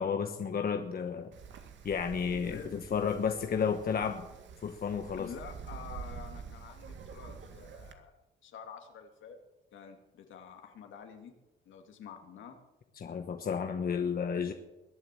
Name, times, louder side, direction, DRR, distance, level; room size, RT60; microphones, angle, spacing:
voice 1, 0.0-1.3 1.8-4.2 4.6-5.3 13.0-14.5, left 6 dB, 50° left, 6 dB, 1.3 m, -32 dB
Wind, 1.3-7.9, right 6 dB, 65° right, 2.1 m, -47 dB
voice 2, 5.2-8.1 8.4-9.4 9.7-11.3 11.7-12.6, left 7 dB, 75° left, 4 dB, 2.7 m, -48 dB
21.5 x 7.8 x 7.8 m, 1.0 s
cardioid pair, 90°, 20 cm